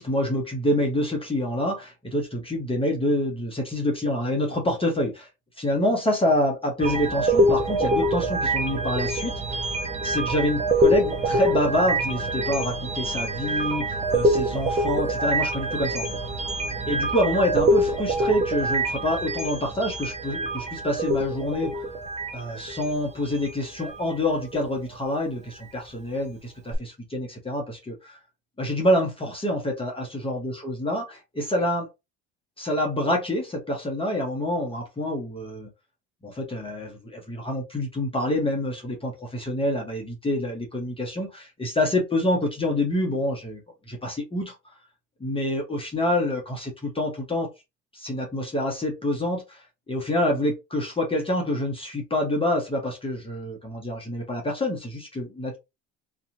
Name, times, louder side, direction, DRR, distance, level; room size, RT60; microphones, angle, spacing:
voice 1, 0.0-5.3 5.6-9.6 10.0-16.0 16.9-21.7 22.3-28.2 28.6-31.9 32.6-35.7 36.2-43.6 43.9-44.5 45.2-47.5 47.9-55.6, left 1 dB, 15° left, 1.0 m, -27 dB
sound 1, 6.8-24.0 24.4-24.7 26.7-26.8, right 1 dB, 20° right, 0.8 m, -25 dB
2.7 x 2.4 x 2.6 m
hypercardioid pair, 70°, 34 cm